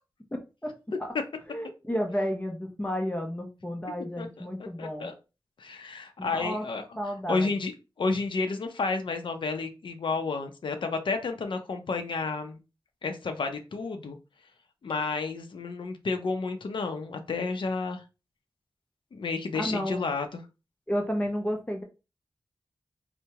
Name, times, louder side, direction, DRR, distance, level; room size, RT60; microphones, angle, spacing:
voice 1, 1.5-5.1 6.2-6.6 7.0-7.5 19.5-20.0 20.9-21.8, equal, 15° left, 2 dB, 0.7 m, -31 dB
voice 2, 4.2-4.5 4.8-5.1 5.6-6.8 7.3-7.7 8.0-12.6 13.0-14.2 14.8-18.0 19.1-20.4, left 4 dB, 75° left, 5 dB, 0.6 m, -31 dB
4.6 x 2.1 x 2.8 m, 0.29 s
wide cardioid pair, 100°, 9 cm